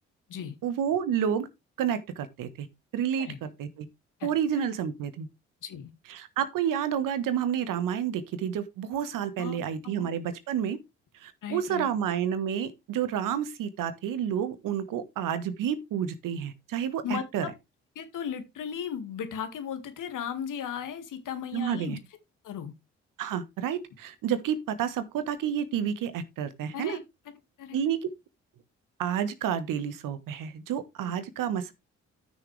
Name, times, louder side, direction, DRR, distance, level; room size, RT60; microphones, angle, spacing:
voice 1, 0.6-1.5 1.8-2.7 2.9-3.9 4.2-5.3 6.1-10.8 11.2-17.4 21.5-22.0 23.2-27.0 27.7-28.0 29.0-31.7, right 9 dB, 75° right, 1.5 m, -30 dB
voice 2, 9.4-10.1 11.4-11.9 17.0-17.5 18.0-22.0 22.4-22.7 26.7-27.0 27.6-27.8 31.0-31.2, left 8 dB, 65° left, 2.3 m, -36 dB
13.0 x 6.5 x 3.4 m
hypercardioid pair, 45°, 33 cm